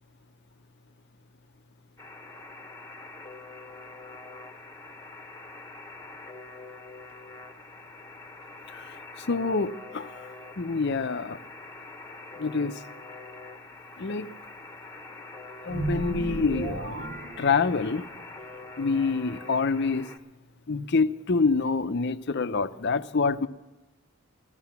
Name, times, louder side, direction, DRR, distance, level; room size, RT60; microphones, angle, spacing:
Alarm, 2.0-20.2, left 3 dB, 15° left, 1.0 m, -45 dB
voice 1, 8.7-11.4 12.4-12.8 14.0-14.3 15.6-17.0 17.4-18.1 18.8-20.1 20.7-23.5, left 4 dB, 50° left, 12 dB, 0.6 m, -27 dB
sound 1, 15.7-18.3, right 2 dB, 40° right, 0.7 m, -34 dB
15.0 x 14.5 x 5.9 m, 1.1 s
head